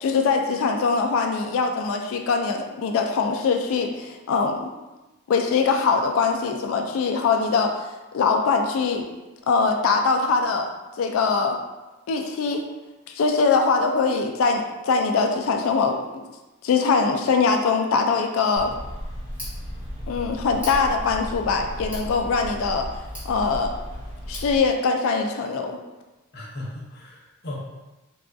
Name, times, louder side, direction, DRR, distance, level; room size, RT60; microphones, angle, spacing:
voice 1, 0.0-4.7 5.3-7.7 8.1-9.1 9.5-10.7 11.0-11.6 12.1-12.6 13.1-16.2 16.6-18.7 20.1-22.9 23.2-23.8 24.3-25.8, left 4 dB, 65° left, 4 dB, 0.3 m, -22 dB
Tick, 18.5-24.6, equal, 5° right, 1.2 m, -35 dB
voice 2, 26.3-27.5, left 1 dB, 50° left, -3 dB, 0.7 m, -37 dB
3.4 x 2.3 x 2.5 m, 1.1 s
head